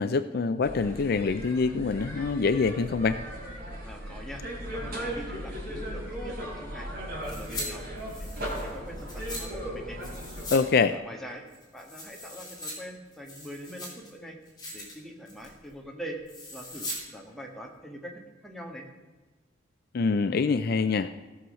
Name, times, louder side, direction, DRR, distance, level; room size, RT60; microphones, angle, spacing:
voice 1, 0.0-3.2 10.5-10.9 19.9-21.1, left 4 dB, 55° left, 11 dB, 0.4 m, -25 dB
sound 1, 0.6-10.5, equal, 50° right, 4.0 m, -37 dB
voice 2, 3.8-4.4 4.7-6.9 7.3-7.8 8.2-10.0 10.9-11.4 11.7-14.4 14.7-16.2 16.5-18.9, equal, ahead, 1 dB, 1.5 m, -43 dB
sound 2, 7.2-7.7 8.0-9.4 10.0-10.6 10.9-11.0 11.5-12.7 13.1-14.1 14.5-14.9 15.3-15.6 16.3-17.0 17.3-17.4, left 1 dB, 20° left, 3.4 m, -40 dB
16.0 x 6.2 x 6.4 m, 1.3 s
head